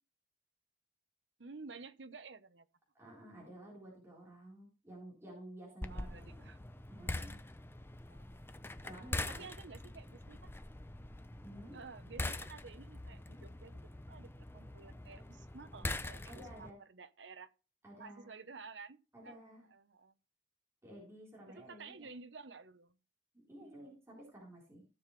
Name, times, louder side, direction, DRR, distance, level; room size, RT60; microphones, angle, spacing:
voice 1, 1.4-2.7 5.9-6.6 8.1-8.8 9.3-10.6 11.7-13.8 14.1-17.5 18.0-19.0 19.2-19.4 19.7-20.1 21.5-23.0 23.6-23.9, right 4 dB, 75° right, 0.9 m, -52 dB
voice 2, 2.9-6.5 6.9-7.4 8.8-9.4 11.4-11.8 16.3-16.8 17.8-18.3 19.1-19.7 20.8-22.1 23.3-24.8, right 1 dB, 15° right, 4.1 m, -52 dB
sound 1, 5.8-16.7, left 2 dB, 15° left, 0.6 m, -44 dB
16.0 x 6.9 x 3.3 m
head